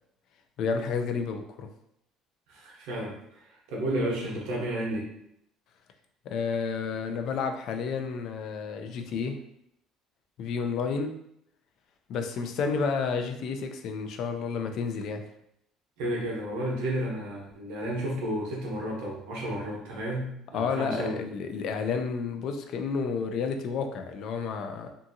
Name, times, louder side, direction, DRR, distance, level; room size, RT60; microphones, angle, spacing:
voice 1, 0.6-1.7 6.3-9.4 10.4-11.1 12.1-15.2 20.5-24.9, left 5 dB, 65° left, 6 dB, 0.3 m, -31 dB
voice 2, 2.5-5.1 16.0-21.2, right 1 dB, 80° right, -3 dB, 0.9 m, -32 dB
2.6 x 2.5 x 2.6 m, 0.75 s
supercardioid pair, 90°, 0 cm